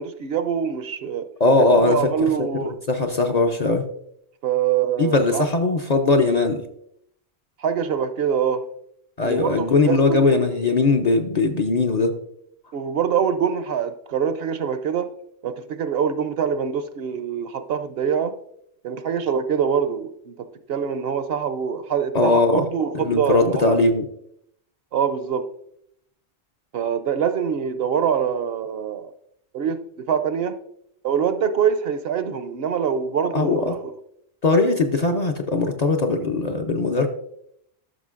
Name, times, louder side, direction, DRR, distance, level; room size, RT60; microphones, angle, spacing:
voice 1, 0.0-1.3 1.8-2.7 4.4-5.5 7.6-8.6 9.2-10.2 12.7-15.1 15.4-18.3 18.8-20.4 20.7-23.8 24.9-25.4 26.7-29.1 29.5-29.8 30.1-30.6 31.0-33.8, right 7 dB, 65° right, 10 dB, 0.7 m, -24 dB
voice 2, 1.4-3.9 5.0-6.6 9.2-12.1 22.1-22.6 22.9-24.1 33.3-33.7 34.4-37.1, left 3 dB, 45° left, 4 dB, 0.5 m, -20 dB
12.5 x 6.0 x 2.4 m, 0.72 s
omnidirectional pair, 1.2 m